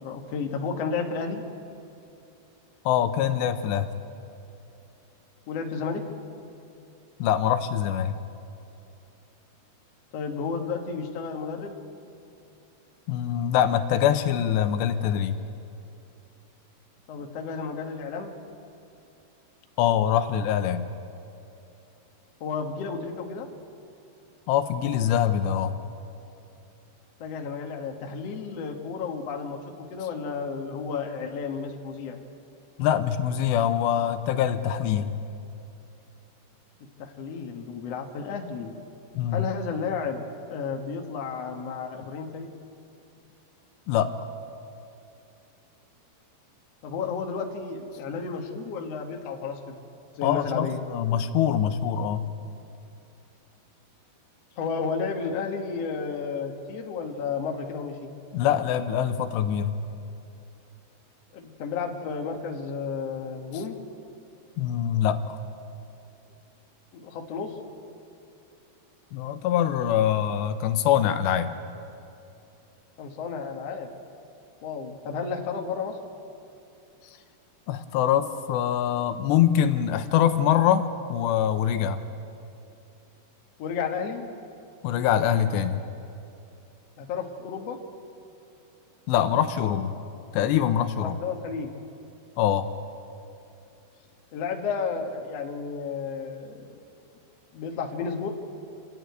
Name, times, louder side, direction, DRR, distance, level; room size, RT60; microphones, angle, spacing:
voice 1, 0.0-1.4 5.5-6.0 10.1-11.8 17.1-18.3 22.4-23.5 27.2-32.2 37.0-38.7 39.3-42.5 46.8-49.6 50.2-50.8 54.6-58.1 61.3-63.8 66.9-67.5 73.0-73.9 74.6-76.0 83.6-84.2 87.0-87.8 91.0-91.7 94.3-96.7 97.5-98.3, left 5 dB, 65° left, 2 dB, 1.6 m, -32 dB
voice 2, 2.9-3.9 7.2-8.2 13.1-15.4 19.8-20.9 24.5-25.8 32.8-35.1 39.1-39.5 43.9-44.3 50.2-52.3 58.3-59.8 64.6-65.4 69.1-71.5 77.7-82.0 84.8-85.8 89.1-90.0 90.3-91.2 92.4-92.7, left 10 dB, 80° left, 9 dB, 2.9 m, -24 dB
27.5 x 11.0 x 9.4 m, 2.7 s
omnidirectional pair, 5.1 m